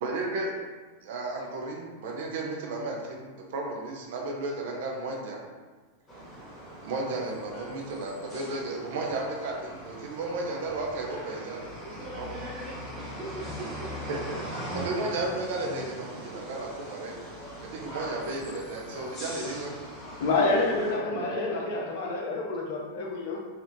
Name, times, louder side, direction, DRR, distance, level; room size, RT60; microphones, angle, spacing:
voice 1, 0.0-0.5 1.0-5.4 6.8-11.7 12.2-12.3 14.1-14.2 14.5-17.1 17.6-19.7 21.1-21.2, right 2 dB, 55° right, -1 dB, 0.4 m, -33 dB
sound 1, 6.1-21.0, equal, 25° left, 0.9 m, -41 dB
voice 2, 11.8-14.5 20.4-21.8 22.3-22.6, right 1 dB, 20° right, -6 dB, 0.8 m, -42 dB
voice 3, 20.2-23.4, left 3 dB, 50° left, -1 dB, 0.5 m, -28 dB
2.8 x 2.0 x 2.6 m, 1.4 s
figure-of-eight pair, 90°, 0 cm